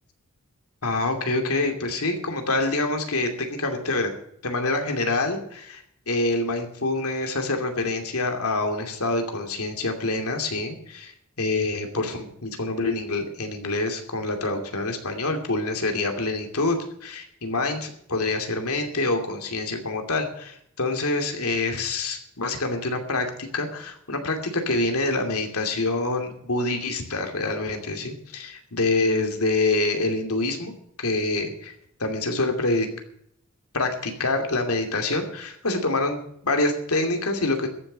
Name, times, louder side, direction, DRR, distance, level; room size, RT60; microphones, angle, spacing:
voice 1, 0.8-4.1 4.4-11.1 11.4-30.7 31.0-31.7 32.0-32.9 33.7-37.7, left 2 dB, 80° left, 5 dB, 2.6 m, -26 dB
14.0 x 7.0 x 9.9 m, 0.70 s
head